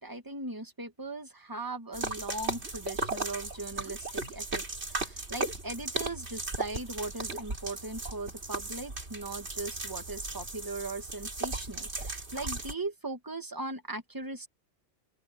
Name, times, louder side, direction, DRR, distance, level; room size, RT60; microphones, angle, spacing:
voice 1, 0.0-14.5, right 2 dB, 20° right, 1.5 m, -39 dB
sound 1, 1.9-12.7, right 2 dB, 65° right, 3.5 m, -36 dB
open air
omnidirectional pair, 1.2 m